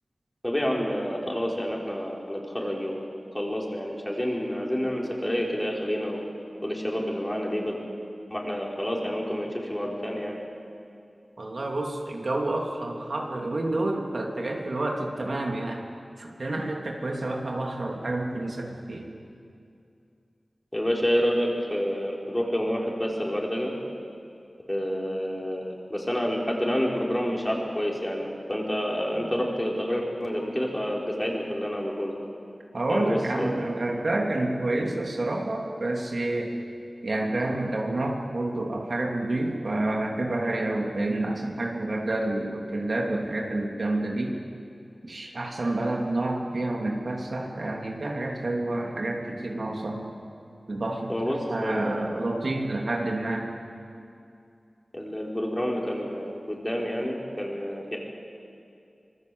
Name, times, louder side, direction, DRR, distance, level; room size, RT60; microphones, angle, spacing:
voice 1, 0.4-3.1 3.3-6.2 6.6-7.8 8.3-10.4 20.7-23.7 24.7-32.1 32.9-33.5 51.1-52.0 54.9-58.0, equal, 15° left, -2 dB, 4.9 m, -28 dB
voice 2, 11.4-15.8 16.2-19.1 32.7-36.6 37.0-44.4 45.0-50.1 50.7-53.5, right 2 dB, 65° right, 0 dB, 2.7 m, -29 dB
25.5 x 21.0 x 8.0 m, 2.5 s
wide cardioid pair, 70°, 0 cm